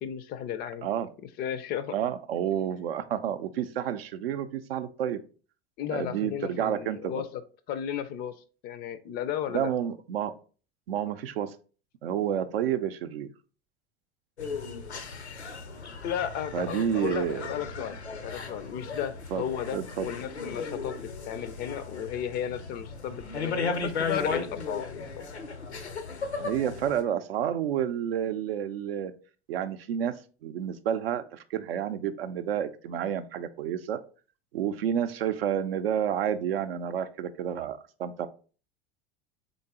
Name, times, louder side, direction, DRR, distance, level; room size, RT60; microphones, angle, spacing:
voice 1, 0.0-0.9 1.4-1.9 5.8-7.4 7.7-8.3 8.6-9.7 16.0-25.1, left 9 dB, 30° left, 12 dB, 0.4 m, -34 dB
voice 2, 1.9-5.2 5.9-7.2 9.5-10.4 10.9-11.6 12.0-13.3 16.5-17.5 19.3-19.4 19.7-20.1 26.4-29.1 29.5-30.1 30.4-34.0 34.5-38.3, right 9 dB, 65° right, 11 dB, 0.5 m, -30 dB
sound 1, 14.4-27.0, left 4 dB, 85° left, 0.7 m, -36 dB
3.9 x 3.7 x 3.6 m, 0.38 s
figure-of-eight pair, 75°, 32 cm